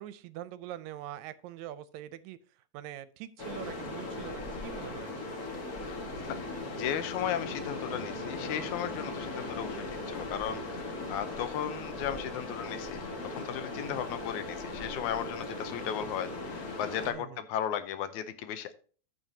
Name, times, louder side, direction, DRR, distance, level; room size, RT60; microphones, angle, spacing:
voice 1, 0.0-2.4 2.7-5.5 13.8-14.3 17.0-17.4, right 12 dB, 80° right, 15 dB, 1.9 m, -44 dB
sound 1, 3.4-17.1, left 2 dB, 35° left, 1.8 m, -38 dB
voice 2, 6.8-18.7, left 10 dB, 85° left, 11 dB, 2.2 m, -36 dB
14.0 x 5.7 x 2.8 m, 0.40 s
omnidirectional pair, 3.3 m